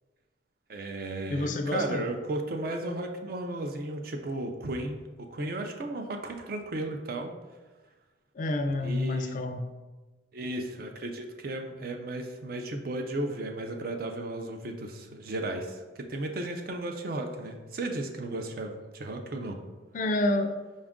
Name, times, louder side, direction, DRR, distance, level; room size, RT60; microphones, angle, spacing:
voice 1, 0.7-7.3 8.8-9.4 10.3-19.6, right 2 dB, 50° right, 4 dB, 0.4 m, -35 dB
voice 2, 1.3-2.0 8.4-9.7 19.9-20.6, left 2 dB, 40° left, 7 dB, 0.3 m, -28 dB
5.2 x 2.4 x 3.6 m, 1.2 s
head